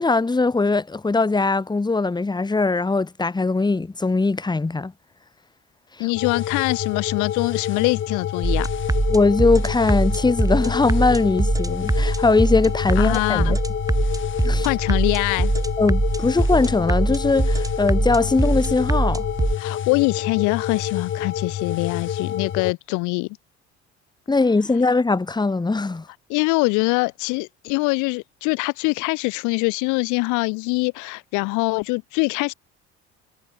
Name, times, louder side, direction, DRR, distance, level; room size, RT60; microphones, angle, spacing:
voice 1, 0.0-4.9 9.1-13.6 14.4-14.7 15.8-19.2 24.3-26.1, left 3 dB, 15° left, 1.4 m, -20 dB
voice 2, 6.0-8.7 13.0-13.6 14.6-15.5 19.6-23.3 26.3-32.5, left 28 dB, 65° left, 0.8 m, -23 dB
sound 1, 6.1-22.7, left 10 dB, 35° left, 0.9 m, -28 dB
sound 2, 8.4-19.5, right 2 dB, 10° right, 2.1 m, -23 dB
hypercardioid pair, 65°, 33 cm